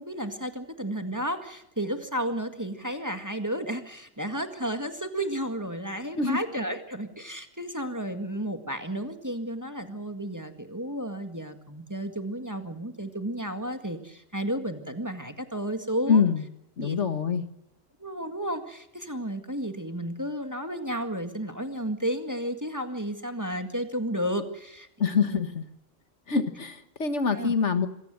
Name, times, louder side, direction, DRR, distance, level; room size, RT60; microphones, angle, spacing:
voice 1, 0.0-16.3 16.8-17.0 18.0-25.4 27.3-27.5, equal, 15° right, 7 dB, 1.9 m, -32 dB
voice 2, 16.1-16.4 16.8-17.4 25.0-25.6 26.3-27.9, left 5 dB, 60° left, 10 dB, 1.8 m, -25 dB
26.0 x 17.0 x 7.8 m, 0.81 s
omnidirectional pair, 1.3 m